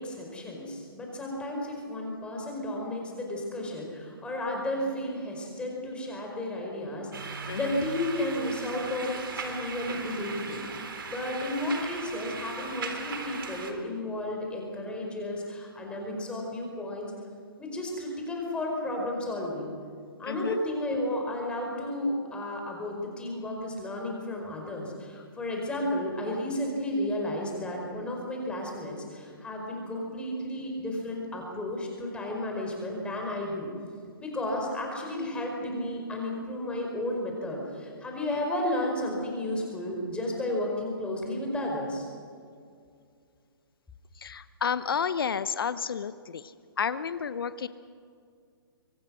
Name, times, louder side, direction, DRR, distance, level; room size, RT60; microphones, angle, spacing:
voice 1, 0.0-17.1 17.6-19.7 20.2-33.7 34.2-42.1, left 1 dB, 10° left, 0 dB, 4.9 m, -33 dB
sound 1, 7.1-13.7, right 4 dB, 65° right, 3.7 m, -38 dB
voice 2, 7.5-7.8 20.2-20.6 44.1-47.7, left 7 dB, 70° left, 14 dB, 0.9 m, -31 dB
26.0 x 24.5 x 6.4 m, 2.3 s
hypercardioid pair, 140°, 12 cm